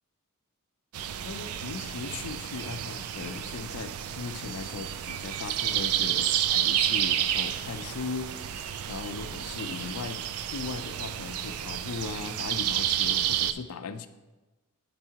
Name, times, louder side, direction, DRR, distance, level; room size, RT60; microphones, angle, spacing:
sound 1, 0.9-13.5, right 11 dB, 80° right, 0.3 m, -30 dB
voice 1, 1.2-8.3 8.9-14.1, left 4 dB, 85° left, 10 dB, 0.5 m, -38 dB
10.0 x 4.7 x 2.8 m, 1.2 s
head